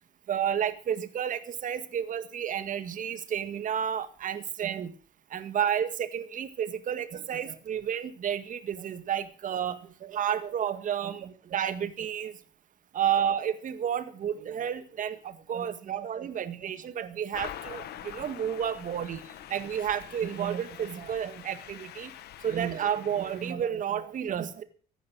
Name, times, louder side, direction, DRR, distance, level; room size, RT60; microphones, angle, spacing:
voice 1, 0.3-4.9 5.3-12.3 12.9-19.2 19.5-22.1 22.4-24.6, right 9 dB, 50° right, 12 dB, 1.8 m, -31 dB
sound 1, 17.3-23.5, left 11 dB, 70° left, 1.4 m, -45 dB
15.5 x 10.5 x 6.2 m, 0.43 s
cardioid pair, 110°, 17 cm